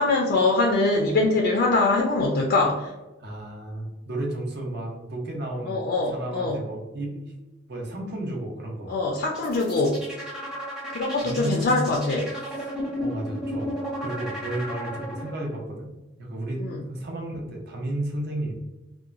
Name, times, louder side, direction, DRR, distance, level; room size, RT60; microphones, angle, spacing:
voice 1, 0.0-2.9 5.7-6.6 8.9-10.0 10.9-12.3 16.6-16.8, left 3 dB, 55° left, 0 dB, 0.3 m, -23 dB
voice 2, 3.2-7.3 7.7-8.9 11.2-11.9 12.5-12.7 13.0-15.9 16.2-18.5, right 1 dB, 60° right, -1 dB, 0.7 m, -33 dB
sound 1, 9.3-15.5, equal, 5° right, 0.6 m, -34 dB
2.9 x 2.2 x 2.4 m, 1.1 s
head